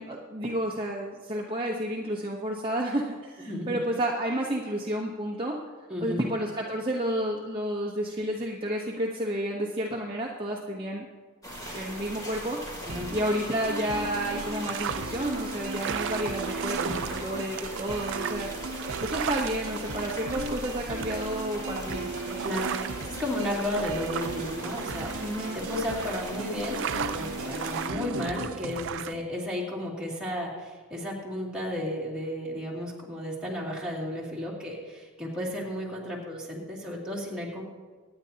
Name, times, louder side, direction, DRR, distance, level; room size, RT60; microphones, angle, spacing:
voice 1, 0.0-5.6 6.0-11.1 11.7-12.6 13.1-18.5 19.0-22.4 25.2-25.6, right 1 dB, 20° right, -3 dB, 1.0 m, -31 dB
voice 2, 3.5-3.8 5.9-6.2 12.8-13.1 16.8-17.0 22.4-37.6, left 1 dB, 5° right, -5 dB, 2.6 m, -33 dB
sound 1, 11.4-27.9, equal, 15° left, 2.7 m, -41 dB
sound 2, 12.9-28.9, right 2 dB, 70° right, 0.9 m, -37 dB
sound 3, 13.9-29.1, right 8 dB, 55° right, 0.4 m, -37 dB
24.5 x 9.8 x 2.9 m, 1.5 s
head